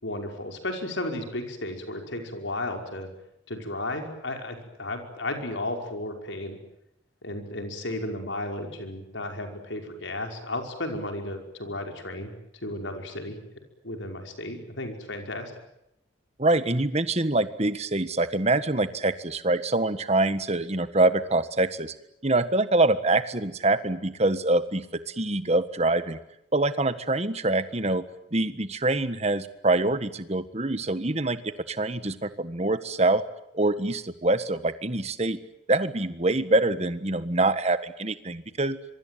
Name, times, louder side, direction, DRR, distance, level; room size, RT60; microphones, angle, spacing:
voice 1, 0.0-3.1 3.5-6.6 7.2-12.3 12.6-13.4 13.8-15.5, left 1 dB, 75° left, 4 dB, 5.4 m, -34 dB
voice 2, 16.4-21.9 22.2-26.2 26.5-28.0 28.3-31.4 31.7-33.2 33.5-35.4 35.7-38.8, right 2 dB, 35° right, 12 dB, 1.5 m, -25 dB
25.5 x 23.5 x 9.3 m, 0.79 s
head